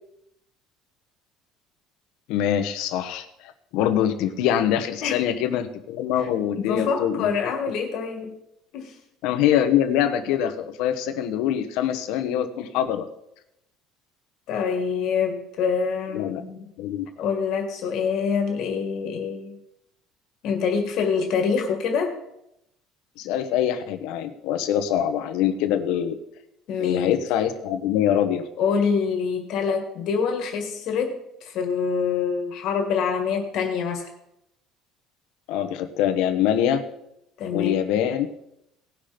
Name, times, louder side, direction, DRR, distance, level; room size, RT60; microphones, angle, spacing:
voice 1, 2.3-7.3 9.2-13.1 16.1-16.4 16.8-17.0 23.2-26.2 26.8-28.5 35.5-36.8 37.5-38.3, left 10 dB, 70° left, 8 dB, 1.1 m, -24 dB
voice 2, 6.6-8.3 8.7-8.9 14.5-16.7 17.2-19.6 20.4-22.2 26.7-27.2 28.6-34.1 37.4-38.1, left 6 dB, 50° left, 4 dB, 1.9 m, -26 dB
18.0 x 6.0 x 5.1 m, 0.81 s
cardioid pair, 175°, 0 cm